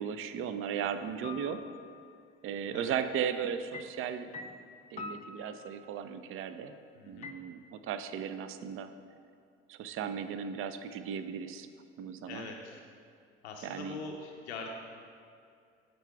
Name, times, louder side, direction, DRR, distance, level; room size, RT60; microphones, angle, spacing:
voice 1, 0.0-1.6 2.4-4.3 4.9-6.7 7.1-8.9 9.7-11.7 12.0-12.5 13.6-14.0, right 8 dB, 40° right, 10 dB, 0.5 m, -36 dB
sound 1, 1.2-2.0 3.7-6.1 7.2-7.4, left 4 dB, 20° left, 0.4 m, -45 dB
voice 2, 6.9-7.3 12.3-12.8 13.4-14.7, left 4 dB, 90° left, 1 dB, 0.6 m, -43 dB
8.0 x 4.0 x 4.6 m, 2.4 s
hypercardioid pair, 60°, 32 cm